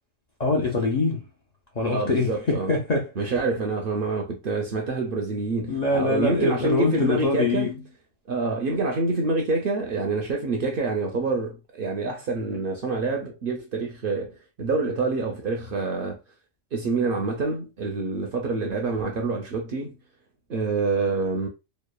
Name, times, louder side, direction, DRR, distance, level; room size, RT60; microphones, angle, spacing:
voice 1, 0.4-1.2 1.8-3.3 5.7-7.8, left 3 dB, 55° left, 0.4 m, -24 dB
voice 2, 1.9-2.7 3.2-7.7 8.3-16.2 16.7-20.0 20.5-21.5, right 3 dB, 60° right, 0.6 m, -27 dB
2.9 x 2.0 x 2.2 m
omnidirectional pair, 1.3 m